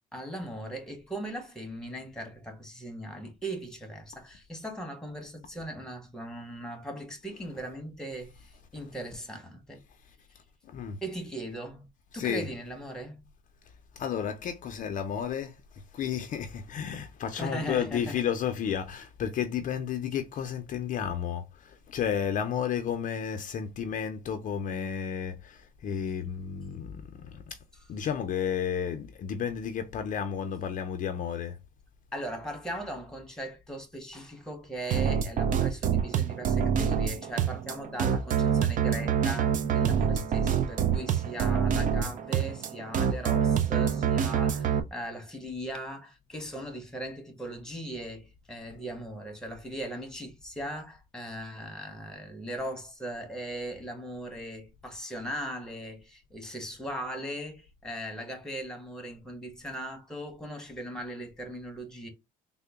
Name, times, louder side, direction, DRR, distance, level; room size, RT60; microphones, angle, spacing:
voice 1, 0.1-8.5 8.7-9.8 11.0-11.9 12.1-13.2 17.3-18.2 32.1-62.1, right 1 dB, 5° left, 1.1 m, -39 dB
voice 2, 10.7-11.0 12.2-12.5 14.0-15.5 15.9-27.6 27.9-31.6, left 8 dB, 50° left, 0.5 m, -32 dB
sound 1, 34.9-44.8, right 8 dB, 50° right, 0.6 m, -26 dB
3.7 x 2.1 x 3.4 m
cardioid pair, 110°, 17 cm